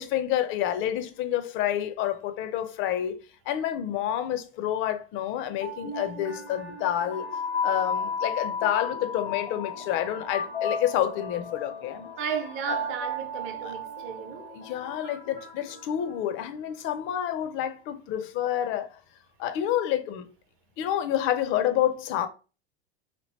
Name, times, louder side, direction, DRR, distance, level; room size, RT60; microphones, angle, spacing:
voice 1, 0.0-3.2 3.5-7.3 7.6-12.1 12.7-12.8 13.7-13.8 14.5-18.9 19.4-20.3 20.8-22.3, left 11 dB, 40° left, 0.5 m, -28 dB
sound 1, 5.4-16.5, left 3 dB, 90° left, 0.8 m, -34 dB
voice 2, 12.2-14.5, right 7 dB, 40° right, 0.8 m, -34 dB
2.9 x 2.7 x 3.0 m
hypercardioid pair, 85°, 31 cm